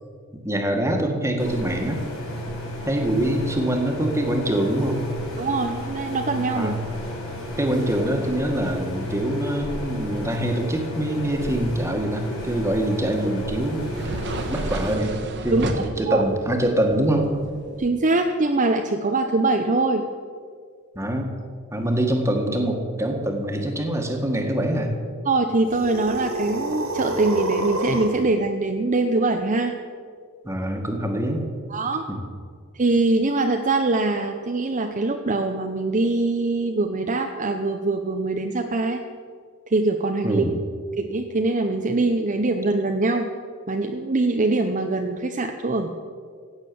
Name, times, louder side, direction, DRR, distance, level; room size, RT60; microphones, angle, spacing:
voice 1, 0.4-2.0 2.9-5.0 6.5-6.8 7.6-13.8 14.5-15.1 15.4-17.3 21.0-21.3 21.7-24.9 30.4-31.5 32.1-32.2 40.2-40.6, right 1 dB, 15° right, 2 dB, 1.7 m, -24 dB
sound 1, 1.4-14.9, left 1 dB, 70° left, 4.5 m, -33 dB
voice 2, 5.4-6.8 15.5-16.2 17.8-20.0 25.3-29.7 31.7-32.0 32.7-39.0 39.7-40.4 41.0-43.3 43.7-45.9, right 2 dB, 35° right, 4 dB, 0.7 m, -23 dB
sound 2, 12.4-17.9, right 1 dB, 55° right, 1.3 m, -34 dB
sound 3, 25.6-28.3, right 1 dB, 80° right, 2.5 m, -28 dB
15.5 x 8.9 x 7.0 m, 2.1 s
head